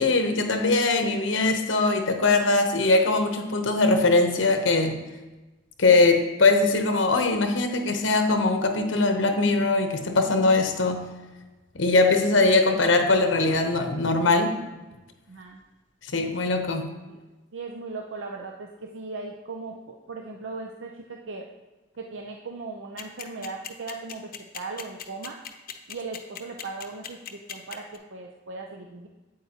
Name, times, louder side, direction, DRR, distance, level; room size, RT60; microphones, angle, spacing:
voice 1, 0.0-5.0 5.8-11.1 11.7-14.6 16.1-16.9, left 3 dB, 90° left, 6 dB, 0.9 m, -21 dB
voice 2, 15.3-15.6 17.1-17.2 17.5-21.4 22.0-25.4 25.9-29.1, right 3 dB, 80° right, 1 dB, 0.6 m, -38 dB
sound 1, 23.0-28.0, left 9 dB, 50° left, 0.7 m, -37 dB
8.6 x 8.2 x 2.9 m, 1.1 s
head